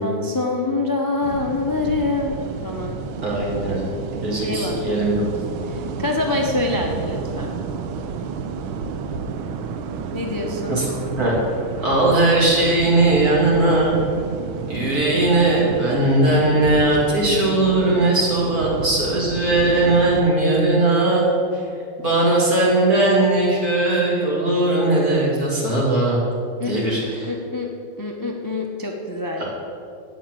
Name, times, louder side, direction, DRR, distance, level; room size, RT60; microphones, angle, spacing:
voice 1, 0.0-3.0 4.4-5.0 5.7-7.5 10.1-10.8 26.6-26.7 27.0-27.7 28.0-29.4, left 2 dB, 25° left, 1 dB, 0.4 m, -25 dB
sound 1, 1.2-20.2, right 5 dB, 85° right, 1.6 m, -31 dB
voice 2, 3.2-3.8 4.2-5.2 10.7-10.8 11.2-11.4 11.8-14.0 14.7-21.3 21.5-21.6 22.0-26.2 26.7-27.3 29.4-29.5, right 2 dB, 45° right, -5 dB, 3.4 m, -19 dB
9.3 x 9.2 x 7.6 m, 2.4 s
omnidirectional pair, 2.2 m